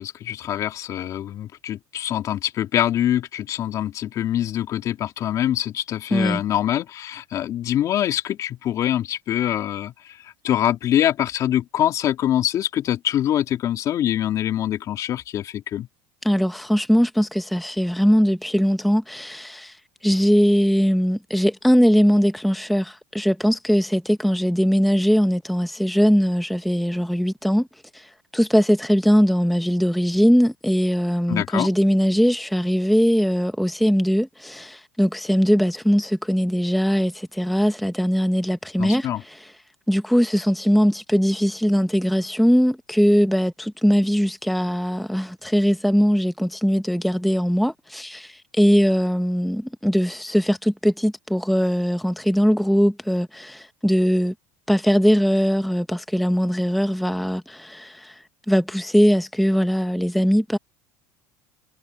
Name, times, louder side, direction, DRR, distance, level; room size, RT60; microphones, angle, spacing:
voice 1, 0.0-15.9 31.3-31.7 38.8-39.2, left 11 dB, 45° left, 2.9 m, -24 dB
voice 2, 6.1-6.4 16.2-27.7 27.9-39.5 39.9-54.3 54.7-60.6, equal, ahead, 0.8 m, -20 dB
supercardioid pair, 125°, 8 cm